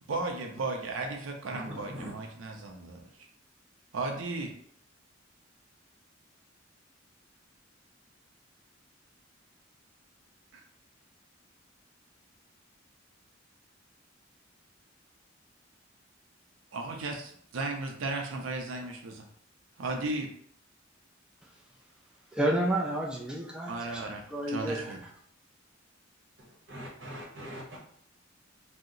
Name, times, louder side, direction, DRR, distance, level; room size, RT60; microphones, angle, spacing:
voice 1, 0.1-3.1 3.9-4.5 10.5-10.6 16.7-19.2 19.8-20.3 23.7-25.0, right 2 dB, 85° right, 2 dB, 0.5 m, -35 dB
voice 2, 1.4-2.1 26.4-27.8, equal, 65° right, -2 dB, 0.9 m, -42 dB
voice 3, 22.3-24.0 24.3-24.9, right 1 dB, 5° right, -2 dB, 0.3 m, -30 dB
2.8 x 2.0 x 3.7 m, 0.62 s
head